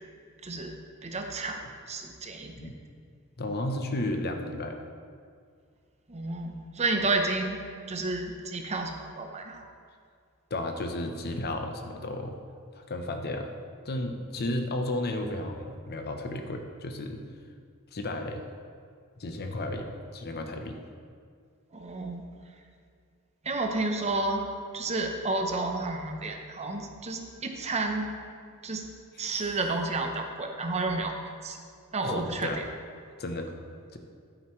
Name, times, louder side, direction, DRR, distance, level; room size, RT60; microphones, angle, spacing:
voice 1, 0.4-0.8 1.0-1.6 1.9-2.7 6.1-7.6 7.9-9.6 21.7-22.2 23.4-24.4 24.7-28.1 28.6-28.8 29.2-31.2 31.4-31.6 31.9-32.6, right 3 dB, 30° right, 4 dB, 0.8 m, -31 dB
voice 2, 3.4-4.8 10.5-12.4 12.7-13.5 13.8-17.2 17.9-18.4 19.2-20.8 29.2-29.4 32.0-32.6 33.2-33.5 33.9-34.0, left 1 dB, 45° left, 5 dB, 0.8 m, -33 dB
11.5 x 9.0 x 3.1 m, 2.2 s
head